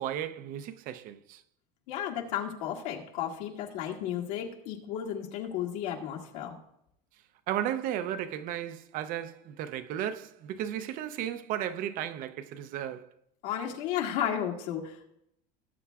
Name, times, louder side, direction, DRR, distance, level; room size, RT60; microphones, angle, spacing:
voice 1, 0.0-1.4 7.5-13.1, right 11 dB, 45° right, 0.5 m, -34 dB
voice 2, 1.9-6.6 13.4-15.1, left 9 dB, 70° left, 1.9 m, -33 dB
18.5 x 8.3 x 2.3 m
cardioid pair, 155°, 20 cm